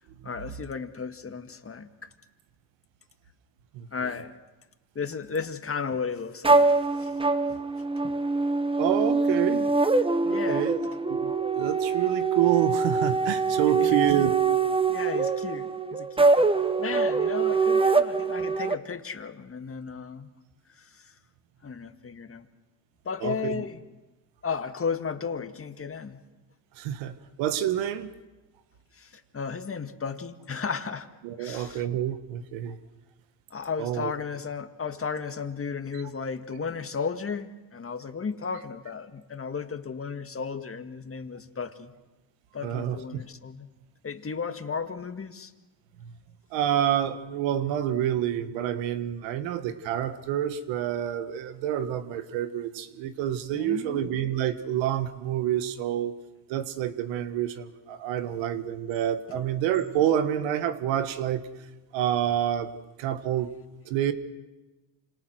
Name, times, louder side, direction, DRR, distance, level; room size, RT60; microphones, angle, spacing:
voice 1, 0.2-2.1 3.9-4.4 5.0-7.2 7.5-7.6 8.0-8.1 10.3-10.7 13.7-14.3 14.9-20.3 20.7-21.1 21.6-22.5 23.1-23.8 24.4-26.2 28.9-31.1 31.4-31.9 33.5-41.9 42.5-43.7 44.0-45.5 53.6-54.1 59.3-59.4, left 5 dB, 30° left, 8 dB, 1.9 m, -34 dB
sound 1, 6.4-18.7, right 4 dB, 10° right, 1.2 m, -24 dB
voice 2, 8.8-9.7 10.2-10.8 11.1-14.3 23.2-23.6 26.8-28.1 31.2-32.8 33.8-34.1 35.9-36.0 42.6-43.0 46.5-56.1 56.5-61.4 61.9-62.7 63.0-63.5 63.8-64.1, right 11 dB, 85° right, 11 dB, 1.6 m, -28 dB
28.0 x 27.0 x 6.4 m, 1.1 s
supercardioid pair, 80°, 44 cm